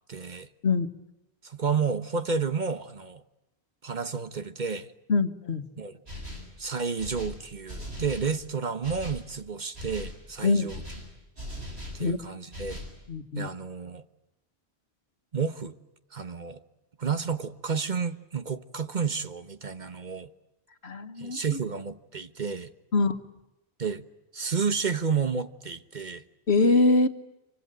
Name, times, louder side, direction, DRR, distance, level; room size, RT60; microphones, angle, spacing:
voice 1, 0.1-0.5 1.4-3.2 3.8-4.9 5.8-5.9 6.6-10.8 11.9-12.8 13.3-14.0 15.3-15.7 16.1-16.6 17.0-20.3 21.2-22.7 23.8-24.0 24.3-26.2, right 5 dB, 45° right, 1.3 m, -31 dB
voice 2, 5.1-5.7 10.4-10.7 12.0-12.2 13.1-13.5 20.8-21.6 22.9-23.2 26.5-27.1, left 3 dB, 80° left, 1.8 m, -23 dB
sound 1, 6.1-6.6 7.0-8.4 8.8-9.3 9.7-10.2 10.7-12.0 12.5-13.0, left 1 dB, 80° right, 7.3 m, -39 dB
26.0 x 24.5 x 9.0 m
omnidirectional pair, 1.1 m